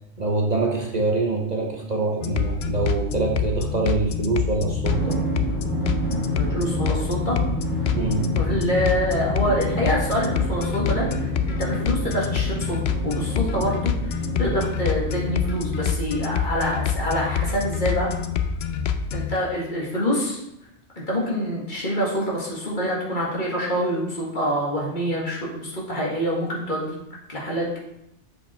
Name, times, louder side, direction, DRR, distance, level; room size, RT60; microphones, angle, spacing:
voice 1, 0.2-5.2 7.9-8.3, right 3 dB, 40° right, 0 dB, 0.9 m, -24 dB
sound 1, 2.2-19.4, left 7 dB, 70° left, 0.8 m, -26 dB
Drum, 4.8-15.9, right 1 dB, 20° left, 3.2 m, -30 dB
voice 2, 6.4-7.4 8.3-18.1 19.1-20.4 21.0-26.9 27.3-27.8, equal, 45° left, -4 dB, 2.2 m, -26 dB
7.5 x 5.1 x 4.4 m, 0.85 s
omnidirectional pair, 1.1 m